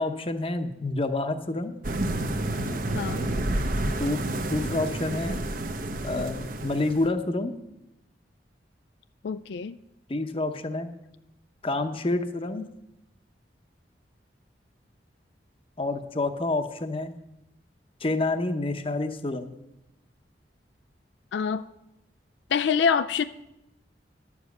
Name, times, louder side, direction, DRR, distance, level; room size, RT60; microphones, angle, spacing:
voice 1, 0.0-1.7 3.9-5.4 6.0-7.5 10.1-10.9 11.6-12.6 15.8-17.1 18.0-19.5, left 2 dB, 30° left, 8 dB, 0.8 m, -28 dB
sound 1, 1.8-7.1, right 1 dB, 50° right, 0.8 m, -29 dB
voice 2, 2.9-3.3 9.2-9.8 21.3-21.6 22.5-23.2, left 6 dB, 75° left, 10 dB, 0.3 m, -25 dB
10.5 x 7.2 x 7.7 m, 0.88 s
head